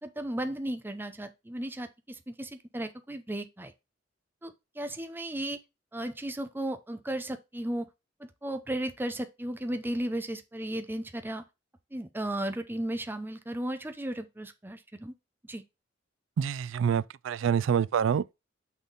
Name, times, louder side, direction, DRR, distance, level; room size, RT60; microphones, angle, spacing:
voice 1, 0.0-3.7 4.4-5.6 5.9-7.9 8.2-11.4 11.9-15.1 15.4-15.6, right 1 dB, 10° right, 0.6 m, -35 dB
voice 2, 16.4-18.3, right 7 dB, 80° right, 0.3 m, -27 dB
6.2 x 3.6 x 5.3 m
head